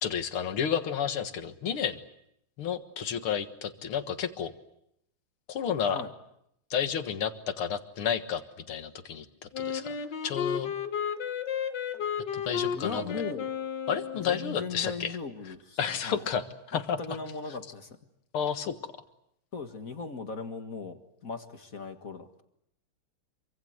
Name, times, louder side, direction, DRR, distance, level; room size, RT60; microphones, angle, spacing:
voice 1, 0.0-2.0 2.6-4.5 5.5-6.0 6.7-8.4 8.7-9.9 10.2-10.7 12.3-13.1 13.9-15.2 15.8-17.2 18.3-18.8, left 8 dB, 80° left, 9 dB, 2.5 m, -31 dB
Wind instrument woodwind instrument, 9.5-14.6, left 7 dB, 60° left, 1.9 m, -33 dB
voice 2, 12.7-13.5 14.2-15.8 16.0-16.2 16.7-18.0 19.5-22.3, left 4 dB, 40° left, 7 dB, 2.0 m, -38 dB
27.0 x 24.5 x 7.9 m, 0.78 s
omnidirectional pair, 2.3 m